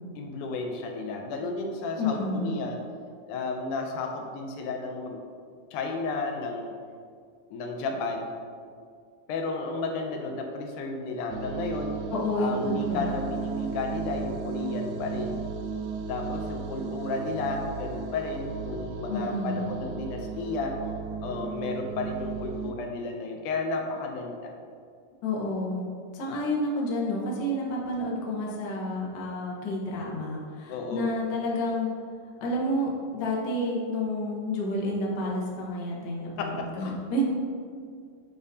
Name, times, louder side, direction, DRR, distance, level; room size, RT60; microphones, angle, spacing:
voice 1, 0.2-2.8 3.3-5.2 5.7-6.8 7.5-8.3 9.3-12.0 12.4-15.4 16.1-20.8 21.2-24.6 30.7-31.1 36.4-36.9, left 3 dB, 80° left, 3 dB, 2.1 m, -33 dB
voice 2, 2.0-2.6 12.1-13.3 19.1-19.7 25.2-25.8 26.1-31.9 32.4-37.2, left 1 dB, 65° left, -3 dB, 1.1 m, -30 dB
sound 1, 11.3-22.7, right 5 dB, 80° right, 1.8 m, -35 dB
8.9 x 5.0 x 2.7 m, 2.2 s
omnidirectional pair, 3.6 m